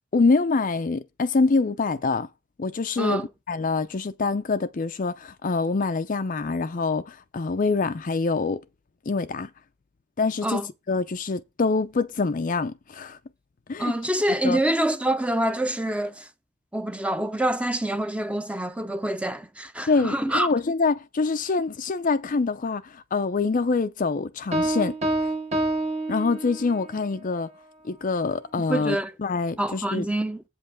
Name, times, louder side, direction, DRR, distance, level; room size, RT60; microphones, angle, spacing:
voice 1, 0.1-2.3 2.6-8.6 9.1-9.5 10.2-10.6 10.9-13.2 13.7-13.9 14.4-14.6 19.9-24.9 26.1-27.5 27.8-30.1, left 4 dB, 35° left, 0.4 m, -25 dB
voice 2, 3.0-3.3 10.4-10.7 13.8-16.3 16.7-20.5 28.6-29.1 29.6-30.4, right 1 dB, 5° right, 0.6 m, -26 dB
Piano, 24.5-26.9, right 2 dB, 30° right, 1.5 m, -27 dB
8.4 x 5.4 x 5.9 m
head